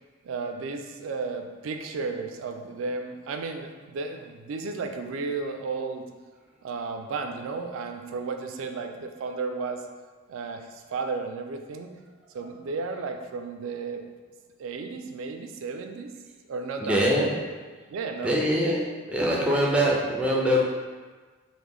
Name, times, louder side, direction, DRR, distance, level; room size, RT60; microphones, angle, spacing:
voice 1, 0.2-6.1 6.6-9.9 10.3-12.0 12.3-14.0 14.6-16.1 16.5-17.4 17.9-18.4, right 4 dB, 75° right, 5 dB, 0.3 m, -33 dB
voice 2, 16.8-17.3 18.2-20.6, equal, 5° right, -3 dB, 0.4 m, -23 dB
3.2 x 2.1 x 3.6 m, 1.4 s
head